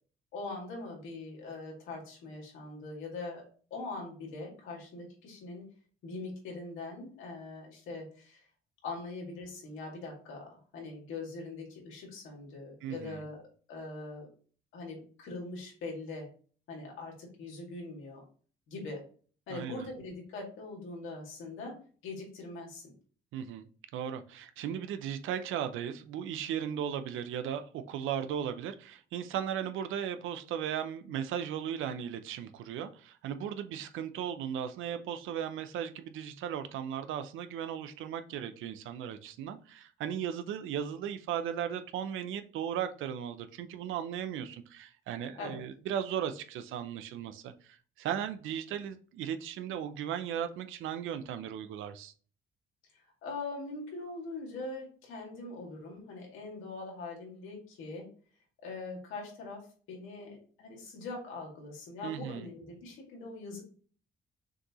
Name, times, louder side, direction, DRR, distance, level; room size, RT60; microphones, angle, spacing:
voice 1, 0.3-3.4 3.7-5.7 6.0-8.4 8.8-13.4 13.7-14.3 14.7-16.3 16.7-18.2 18.7-19.0 19.5-22.9 45.4-45.6 52.9-58.1 58.6-63.6, left 3 dB, 90° left, -1 dB, 2.1 m, -42 dB
voice 2, 12.8-13.2 19.5-19.9 23.3-23.7 23.9-52.1 62.0-62.5, right 9 dB, 85° right, 10 dB, 0.6 m, -36 dB
6.3 x 2.7 x 2.9 m, 0.41 s
cardioid pair, 90°, 20 cm